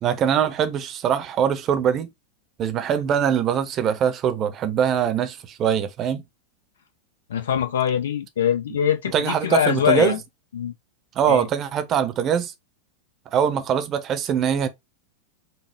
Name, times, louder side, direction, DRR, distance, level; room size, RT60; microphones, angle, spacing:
voice 1, 0.0-2.1 2.6-6.2 9.1-10.2 11.2-12.5 13.3-14.7, right 8 dB, 30° right, 0.8 m, -22 dB
voice 2, 7.3-10.2 10.5-10.7 11.3-11.4, left 9 dB, 65° left, 0.9 m, -23 dB
5.4 x 2.3 x 3.5 m
figure-of-eight pair, 90°, 0 cm